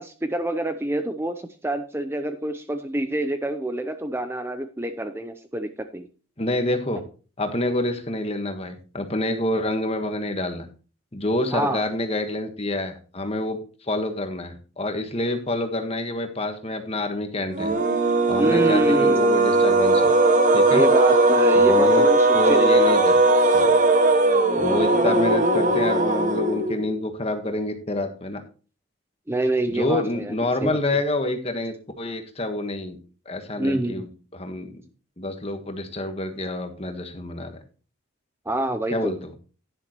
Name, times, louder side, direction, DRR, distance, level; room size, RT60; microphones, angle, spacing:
voice 1, 0.0-6.1 11.5-11.8 18.4-19.3 20.7-23.0 24.4-25.4 29.3-30.8 33.6-34.0 38.5-39.1, right 1 dB, 10° right, 8 dB, 0.5 m, -27 dB
voice 2, 6.4-7.0 7.4-10.7 11.1-17.7 18.3-20.1 20.5-20.8 21.5-22.1 22.3-23.2 23.5-23.7 24.6-28.4 29.7-33.0 33.2-34.8 35.2-37.6 38.9-39.3, left 1 dB, 30° left, 6 dB, 1.4 m, -27 dB
sound 1, 17.5-26.9, right 2 dB, 35° right, 1.2 m, -18 dB
11.0 x 10.5 x 3.0 m, 0.37 s
head